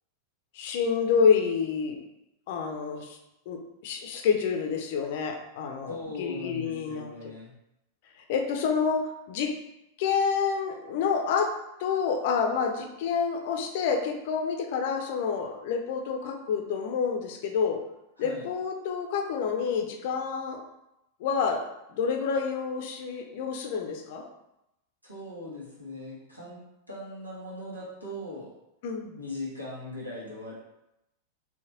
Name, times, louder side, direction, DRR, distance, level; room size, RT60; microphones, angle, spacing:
voice 1, 0.5-2.0 2.5-3.2 3.5-7.1 8.3-9.5 10.0-11.5 11.8-17.8 18.2-20.6 21.2-21.6 21.9-24.3 28.8-29.2, left 6 dB, 50° left, 3 dB, 0.6 m, -28 dB
voice 2, 5.9-7.5 18.2-18.5 25.0-26.6 26.9-28.5 29.2-30.5, left 2 dB, 85° right, -6 dB, 1.4 m, -39 dB
4.7 x 2.9 x 2.9 m, 0.88 s
figure-of-eight pair, 90°, 0 cm